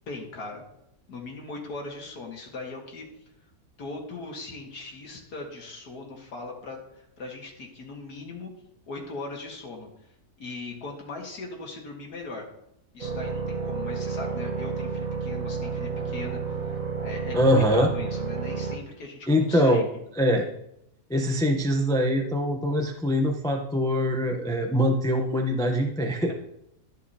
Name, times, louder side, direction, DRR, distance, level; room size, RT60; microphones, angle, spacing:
voice 1, 0.1-0.6 1.1-3.0 3.8-8.5 8.9-9.9 10.4-12.4 12.9-16.4 17.0-19.8, left 3 dB, 90° left, 0 dB, 2.2 m, -39 dB
sound 1, 13.0-18.8, right 5 dB, 60° right, 1.7 m, -31 dB
voice 2, 17.3-17.9 19.3-19.8 20.2-20.5 21.1-26.3, equal, 5° left, 2 dB, 0.4 m, -23 dB
13.0 x 6.5 x 2.8 m, 0.79 s
omnidirectional pair, 1.6 m